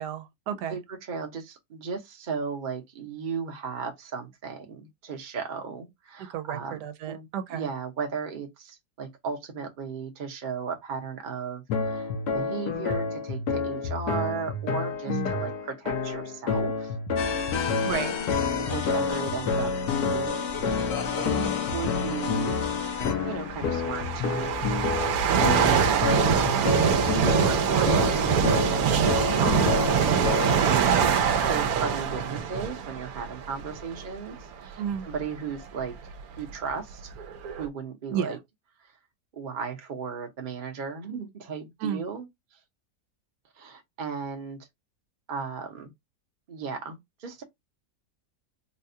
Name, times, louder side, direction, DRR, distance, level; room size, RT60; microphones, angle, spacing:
voice 1, 0.0-0.8 6.3-7.7 15.1-15.3 17.8-18.1 21.3-21.6 27.7-27.9 29.3-29.6 34.8-35.1 38.1-38.4 41.8-42.0, right 8 dB, 90° right, 1.2 m, -32 dB
voice 2, 0.7-16.9 17.5-17.8 18.5-20.4 21.2-22.6 23.2-25.0 25.6-26.8 27.1-28.5 29.2-30.6 31.5-35.9 36.4-37.2 37.6-38.4 38.8-38.9 39.3-42.3 43.5-44.6 45.3-45.9 46.5-47.4, right 5 dB, 40° right, 0.8 m, -35 dB
sound 1, 11.7-30.8, left 5 dB, 75° left, 1.4 m, -29 dB
sound 2, 17.2-23.1, left 6 dB, 55° left, 0.8 m, -31 dB
sound 3, 20.5-20.8 21.9-22.0 22.8-34.2 34.8-35.0 35.8-35.9 36.1-37.7, right 7 dB, 70° right, 1.1 m, -24 dB
4.1 x 2.3 x 2.7 m
omnidirectional pair, 1.7 m